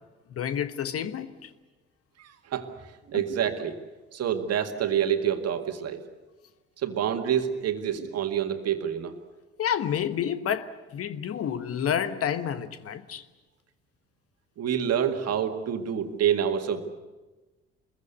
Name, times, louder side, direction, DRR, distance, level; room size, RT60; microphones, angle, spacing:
voice 1, 0.3-1.5 3.1-3.2 9.6-13.2, left 9 dB, 45° left, 1.2 m, -29 dB
voice 2, 2.2-2.7 3.1-3.8 4.1-6.0 6.8-9.2 14.6-16.8, right 9 dB, 50° right, 2.0 m, -27 dB
25.5 x 22.0 x 6.8 m
figure-of-eight pair, 45°, 33 cm